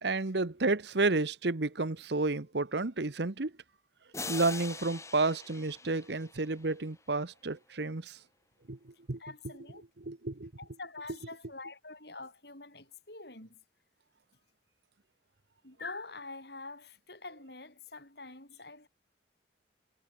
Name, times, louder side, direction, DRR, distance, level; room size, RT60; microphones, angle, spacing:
voice 1, 0.0-3.5 4.3-8.2 8.7-9.2 10.0-10.5, right 3 dB, 65° right, 1.1 m, -31 dB
sound 1, 4.1-6.8, left 4 dB, 15° left, 6.5 m, -43 dB
voice 2, 9.2-9.8 10.6-13.6 15.6-18.9, left 3 dB, 60° left, 7.0 m, -46 dB
head